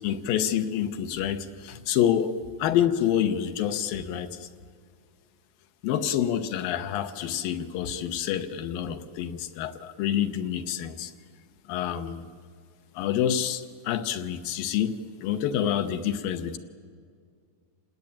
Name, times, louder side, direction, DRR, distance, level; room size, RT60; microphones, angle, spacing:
voice 1, 0.0-4.5 5.8-11.1 11.7-12.3 13.0-16.6, left 10 dB, 80° left, 8 dB, 2.7 m, -27 dB
27.0 x 19.5 x 8.8 m, 2.1 s
omnidirectional pair, 4.0 m